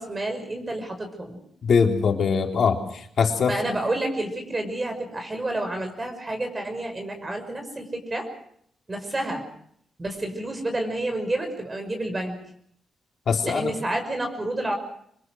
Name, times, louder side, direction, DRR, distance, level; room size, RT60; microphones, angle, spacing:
voice 1, 0.0-1.4 3.5-8.3 8.9-9.4 10.0-12.4 13.4-14.7, right 1 dB, 25° right, 5 dB, 6.0 m, -29 dB
voice 2, 1.6-3.8 13.3-13.7, left 6 dB, 65° left, 3 dB, 3.8 m, -22 dB
26.5 x 21.5 x 6.3 m, 0.68 s
cardioid pair, 85°, 0 cm